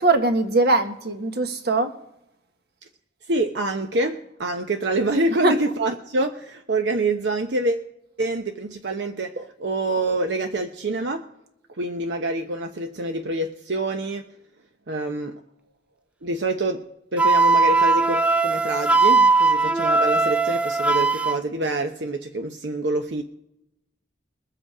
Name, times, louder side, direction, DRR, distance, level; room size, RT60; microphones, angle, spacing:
voice 1, 0.0-1.9 5.4-5.6 9.4-9.5, right 2 dB, 65° right, 7 dB, 1.4 m, -21 dB
voice 2, 3.3-7.8 8.2-11.3 11.8-14.3 14.9-15.4 16.2-16.8 17.1-23.2, right 2 dB, 85° right, 5 dB, 0.9 m, -26 dB
Wind instrument woodwind instrument, 17.2-21.4, right 3 dB, 5° right, 0.4 m, -19 dB
22.0 x 7.9 x 4.8 m, 0.81 s
head